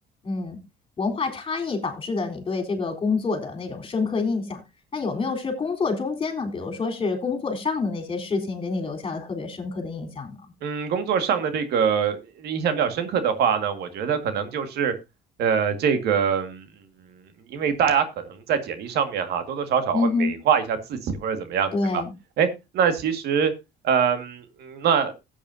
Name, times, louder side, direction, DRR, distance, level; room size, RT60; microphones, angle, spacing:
voice 1, 0.2-0.6 1.0-4.6 4.9-10.4 19.9-20.3 21.7-22.1, left 4 dB, 30° left, 5 dB, 3.9 m, -27 dB
voice 2, 10.6-14.9 15.4-16.6 17.5-22.0 22.4-22.5 22.7-23.5 23.8-25.1, right 7 dB, 75° right, 9 dB, 1.9 m, -24 dB
16.0 x 8.6 x 2.7 m, 0.24 s
cardioid pair, 110°, 17 cm